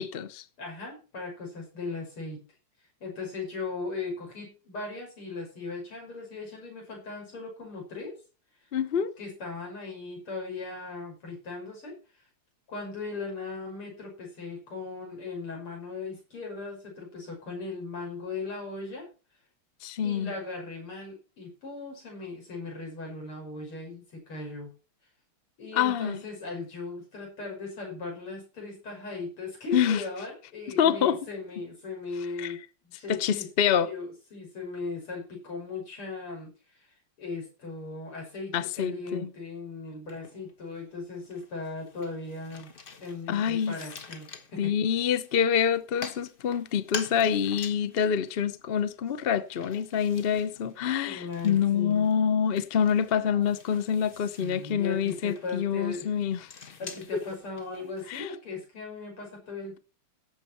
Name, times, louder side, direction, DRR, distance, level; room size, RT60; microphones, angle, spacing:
voice 1, 0.0-0.4 8.7-9.1 19.8-20.3 25.7-26.2 29.7-30.0 30.8-31.2 32.4-32.6 33.1-33.9 38.5-39.3 43.3-43.8 44.6-56.5 58.1-58.3, left 8 dB, 65° left, 0.5 m, -26 dB
voice 2, 0.6-2.4 3.0-8.2 9.2-12.2 12.7-19.1 20.0-24.7 25.6-32.6 33.0-33.5 33.8-42.7 43.0-44.7 51.0-52.1 54.1-56.1 56.8-59.8, left 3 dB, 80° left, 6.8 m, -38 dB
sound 1, 40.0-40.8 41.1-58.3, left 5 dB, 40° left, 0.9 m, -46 dB
17.0 x 7.5 x 4.4 m
omnidirectional pair, 2.4 m